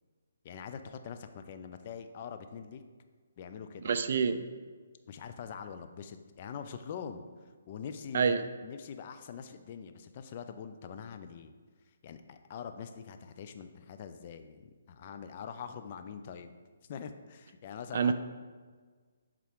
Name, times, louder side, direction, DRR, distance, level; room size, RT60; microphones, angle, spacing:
voice 1, 0.4-2.8 3.4-3.9 5.1-11.5 12.0-16.5 16.9-18.1, left 7 dB, 40° left, 8 dB, 0.4 m, -44 dB
voice 2, 3.8-4.5 8.1-8.4 17.9-18.1, right 6 dB, 55° right, 9 dB, 0.4 m, -27 dB
7.2 x 3.7 x 3.6 m, 1.5 s
hypercardioid pair, 155°, 0 cm